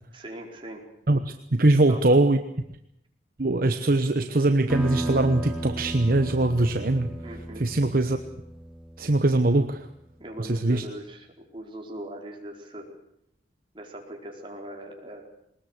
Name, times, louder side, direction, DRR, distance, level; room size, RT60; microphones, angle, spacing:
voice 1, 0.1-0.9 1.9-2.0 7.2-7.7 10.2-12.9 13.7-15.2, right 1 dB, 30° right, 0 dB, 4.5 m, -40 dB
voice 2, 1.1-2.4 3.4-7.1 7.6-8.2 9.0-9.8 10.4-10.8, right 2 dB, 55° right, 7 dB, 1.1 m, -22 dB
sound 1, 4.7-9.8, right 1 dB, 5° right, 3.6 m, -35 dB
21.5 x 20.0 x 8.1 m, 0.76 s
head